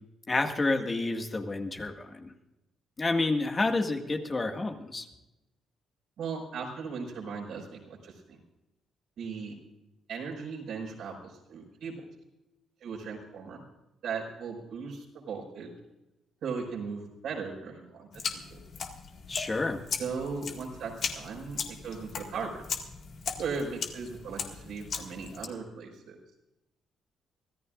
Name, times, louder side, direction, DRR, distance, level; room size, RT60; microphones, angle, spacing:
voice 1, 0.3-2.3 3.0-5.1 19.3-19.8, left 2 dB, 30° left, 4 dB, 1.9 m, -29 dB
voice 2, 6.2-8.4 9.2-9.6 10.1-12.0 12.8-13.6 14.0-15.7 16.4-18.2 18.5-18.6 20.0-22.6 23.4-26.2, right 5 dB, 75° right, -1 dB, 5.6 m, -37 dB
sound 1, 18.1-25.5, left 6 dB, 60° left, 2.0 m, -38 dB
25.5 x 14.0 x 2.5 m, 0.94 s
cardioid pair, 90°, 0 cm